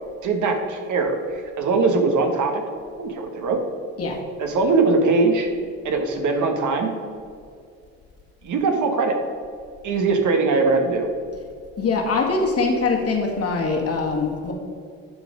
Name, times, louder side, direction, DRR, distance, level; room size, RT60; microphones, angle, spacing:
voice 1, 0.2-2.6 3.0-3.6 4.4-5.5 5.8-6.9 8.4-9.2 9.8-11.1, right 3 dB, 60° right, 4 dB, 1.4 m, -21 dB
voice 2, 11.8-14.5, left 3 dB, 45° left, 1 dB, 1.9 m, -23 dB
11.5 x 4.1 x 5.1 m, 2.3 s
supercardioid pair, 75°, 34 cm